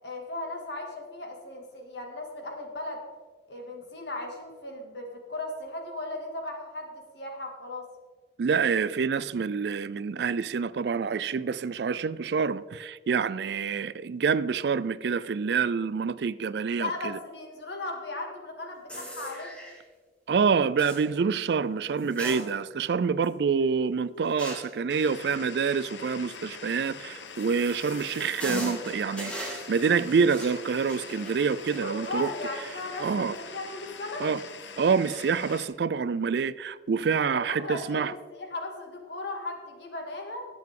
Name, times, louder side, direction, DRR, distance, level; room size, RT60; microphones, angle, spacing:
voice 1, 0.0-3.0 3.5-7.8 13.3-13.5 16.8-19.5 31.8-34.2 37.2-40.5, left 2 dB, 75° left, 2.3 m, -37 dB
voice 2, 8.4-17.2 20.3-32.3 33.0-33.4 34.2-34.4 34.8-38.1, right 5 dB, 70° right, 0.4 m, -27 dB
sound 1, 18.9-19.8 20.8-21.1 22.0-22.9 23.2-23.3 24.4-24.8 26.9-33.0 33.3-33.4 34.4-34.7, equal, 5° left, 2.3 m, -40 dB
sound 2, 24.9-35.6, left 5 dB, 90° left, 1.1 m, -43 dB
19.0 x 7.6 x 3.8 m
head